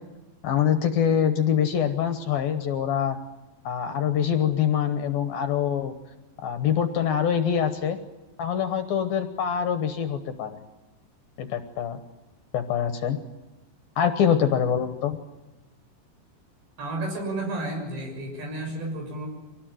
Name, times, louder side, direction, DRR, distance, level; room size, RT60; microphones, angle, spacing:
voice 1, 0.4-3.2 3.6-5.9 6.4-8.0 8.4-10.6 11.4-12.0 12.5-13.2 14.0-15.2, left 8 dB, 70° left, 8 dB, 2.5 m, -24 dB
voice 2, 16.8-19.3, right 2 dB, 70° right, 2 dB, 8.8 m, -32 dB
25.0 x 18.5 x 9.1 m, 1.1 s
omnidirectional pair, 5.1 m